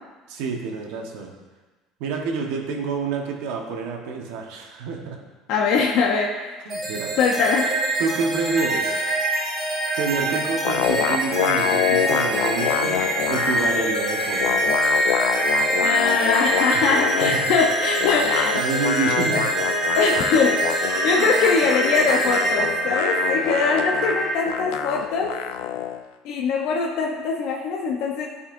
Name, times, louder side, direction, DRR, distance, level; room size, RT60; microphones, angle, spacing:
voice 1, 0.3-1.3 2.0-5.2 6.6-7.1 8.0-9.0 10.0-14.7 16.7-16.9 17.2-17.6 18.5-19.6 21.2-21.3, right 4 dB, 75° right, 1 dB, 1.3 m, -28 dB
voice 2, 5.5-6.6 7.2-7.8 15.8-18.6 19.9-25.3 26.2-28.3, left 5 dB, 55° left, -1 dB, 0.8 m, -22 dB
sound 1, 6.7-24.4, right 1 dB, 20° right, 2.2 m, -24 dB
sound 2, 10.6-13.9 14.2-17.5 18.0-26.0, left 11 dB, 80° left, 0.4 m, -26 dB
13.0 x 5.6 x 2.6 m, 1.3 s
cardioid pair, 170°, 0 cm